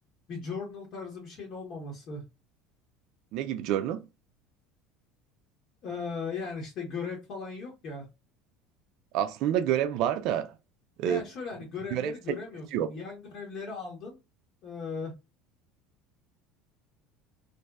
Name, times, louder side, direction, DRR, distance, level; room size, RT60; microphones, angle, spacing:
voice 1, 0.3-2.2 5.8-8.1 11.0-14.2 14.6-15.1, left 4 dB, 55° left, 1.0 m, -37 dB
voice 2, 3.3-4.0 9.1-10.5 11.0-11.2 11.9-12.1 12.7-12.9, right 10 dB, 65° right, 0.3 m, -28 dB
2.6 x 2.1 x 2.3 m
hypercardioid pair, 85°, 0 cm